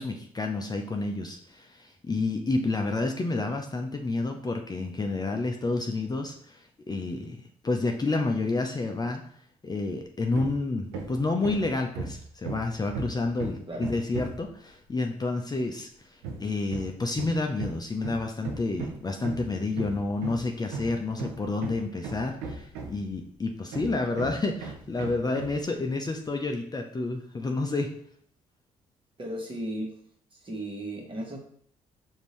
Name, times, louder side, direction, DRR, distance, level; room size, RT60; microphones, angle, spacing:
voice 1, 0.0-7.4 7.6-9.2 9.6-27.9, left 3 dB, 25° left, 3 dB, 0.6 m, -29 dB
Hammer, 10.3-10.6 10.9-14.5 16.2-23.2 23.7-25.6, right 4 dB, 90° right, 0.6 m, -37 dB
voice 2, 29.2-29.9 30.3-31.4, right 1 dB, 30° right, 0 dB, 1.4 m, -35 dB
5.1 x 2.7 x 3.1 m, 0.65 s
hypercardioid pair, 55°, 16 cm